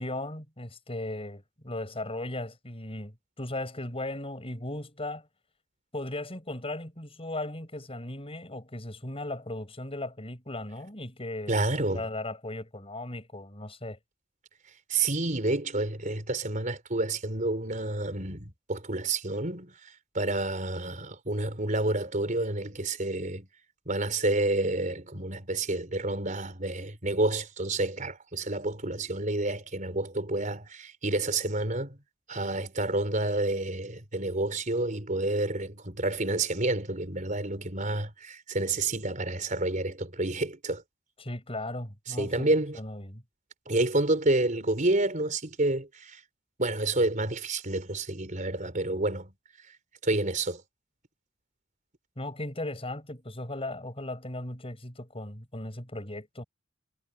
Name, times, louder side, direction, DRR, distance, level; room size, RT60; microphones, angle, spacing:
voice 1, 0.0-5.3 5.9-11.7 11.9-14.0 41.2-42.5 42.8-43.2 52.2-56.4, left 1 dB, 30° left, 7.6 m, -37 dB
voice 2, 11.5-12.1 14.9-23.5 23.9-32.0 32.3-40.8 42.1-42.8 43.7-46.2 46.6-49.3 50.0-50.6, right 2 dB, 40° right, 4.3 m, -29 dB
head